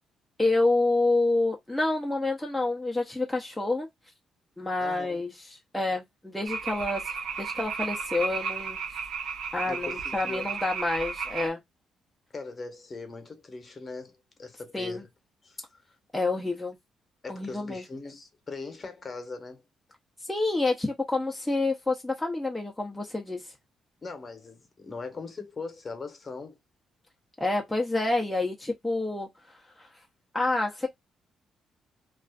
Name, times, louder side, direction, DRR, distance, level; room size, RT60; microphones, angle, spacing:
voice 1, 0.4-3.9 4.6-8.8 9.5-11.6 14.7-15.0 16.1-16.8 17.3-17.8 20.3-23.5 27.4-29.9 30.3-30.9, left 2 dB, 5° left, 0.6 m, -28 dB
voice 2, 4.8-5.2 9.7-10.6 12.3-15.1 15.4-15.8 17.2-19.6 24.0-26.6, left 3 dB, 35° left, 0.9 m, -40 dB
sound 1, 6.5-11.5, right 5 dB, 75° right, 0.5 m, -33 dB
2.4 x 2.3 x 2.2 m
cardioid pair, 90°, 0 cm